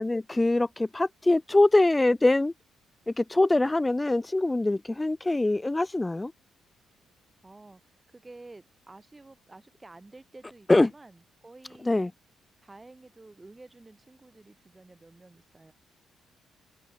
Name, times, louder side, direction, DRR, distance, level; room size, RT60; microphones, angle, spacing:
voice 1, 0.0-2.5 3.1-6.3 10.7-10.9 11.8-12.1, left 2 dB, 15° left, 0.6 m, -23 dB
voice 2, 7.4-11.9 12.6-15.7, right 2 dB, 20° right, 6.3 m, -51 dB
open air
cardioid pair, 90°, 0 cm